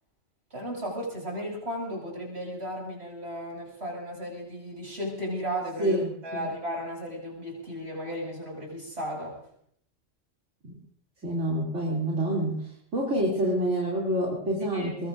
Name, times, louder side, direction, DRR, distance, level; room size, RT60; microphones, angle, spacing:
voice 1, 0.5-9.4 14.7-15.1, equal, 60° right, -1 dB, 7.1 m, -35 dB
voice 2, 5.8-6.5 11.2-12.6 12.9-15.1, right 1 dB, 80° right, -5 dB, 3.3 m, -27 dB
22.5 x 21.5 x 2.6 m, 0.66 s
omnidirectional pair, 1.3 m